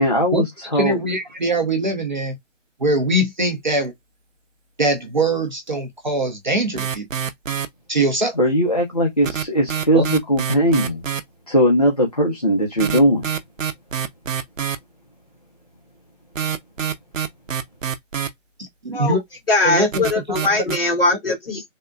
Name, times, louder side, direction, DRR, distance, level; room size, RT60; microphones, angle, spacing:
voice 1, 0.0-1.0 8.4-11.0 11.5-13.3, equal, 30° left, 0.5 m, -19 dB
voice 2, 0.7-2.4 2.8-3.9 4.8-7.0 7.9-8.4 9.9-10.1 18.8-19.2 19.6-20.4, right 2 dB, 40° right, 0.6 m, -22 dB
sound 1, 6.8-7.7 9.2-11.2 12.6-14.8 16.4-18.3 19.9-20.8, right 8 dB, 85° right, 0.7 m, -25 dB
voice 3, 19.5-21.6, left 3 dB, 45° left, 1.7 m, -20 dB
3.5 x 2.1 x 2.4 m
figure-of-eight pair, 165°, 38 cm